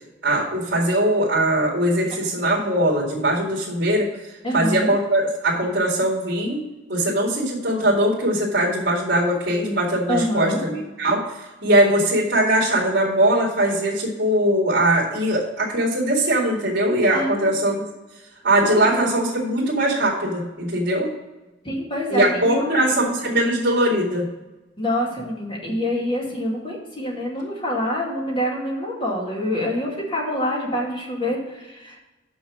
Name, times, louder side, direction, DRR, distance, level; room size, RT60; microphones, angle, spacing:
voice 1, 0.2-4.1 4.5-6.6 6.9-11.2 11.6-17.8 18.4-21.1 22.1-24.3, right 1 dB, 60° right, -6 dB, 2.2 m, -21 dB
voice 2, 4.4-4.9 10.1-10.6 17.1-17.6 18.6-18.9 21.6-22.8 24.8-32.0, equal, 30° left, -3 dB, 2.3 m, -26 dB
6.3 x 6.1 x 7.2 m, 1.1 s
head